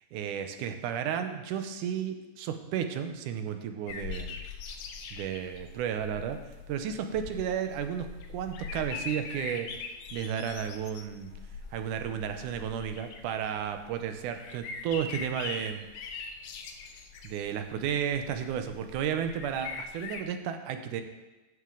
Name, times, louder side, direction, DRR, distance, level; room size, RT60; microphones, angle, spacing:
voice 1, 0.1-4.4 5.1-6.4 6.7-9.7 10.1-11.3 11.7-15.9 17.2-21.0, right 8 dB, 85° right, 7 dB, 2.2 m, -33 dB
sound 1, 3.9-20.2, left 5 dB, 75° left, 1.4 m, -42 dB
14.5 x 6.2 x 3.8 m, 1.1 s
omnidirectional pair, 3.5 m